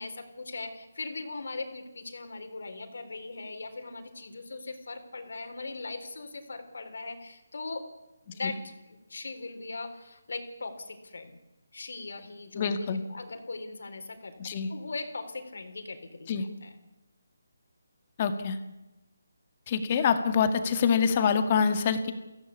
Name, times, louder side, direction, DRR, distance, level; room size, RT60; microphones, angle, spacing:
voice 1, 0.0-7.9 8.3-11.4 11.7-14.4 14.7-16.8, left 3 dB, 70° left, 6 dB, 4.0 m, -39 dB
voice 2, 12.6-13.0 14.4-14.7 16.3-16.4 18.2-18.6 19.7-22.1, left 6 dB, 30° left, 8 dB, 2.0 m, -25 dB
23.0 x 16.0 x 8.5 m, 1.0 s
hypercardioid pair, 165°, 0 cm